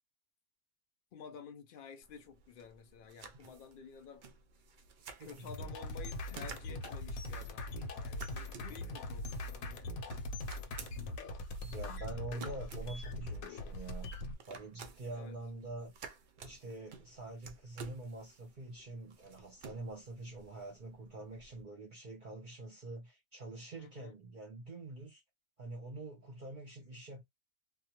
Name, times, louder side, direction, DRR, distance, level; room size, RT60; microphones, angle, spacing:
voice 1, 1.1-4.3 5.2-7.7 8.0-10.0 15.1-15.4 23.8-24.2, left 6 dB, 65° left, 0.5 m, -52 dB
sound 1, 2.0-21.6, right 5 dB, 70° right, 0.4 m, -54 dB
voice 2, 5.2-5.5 11.6-14.1 14.5-16.0 16.4-25.2 25.6-27.2, right 2 dB, 45° right, 0.7 m, -46 dB
sound 2, 5.5-14.3, left 2 dB, 85° left, 1.1 m, -41 dB
2.3 x 2.2 x 2.9 m
omnidirectional pair, 1.4 m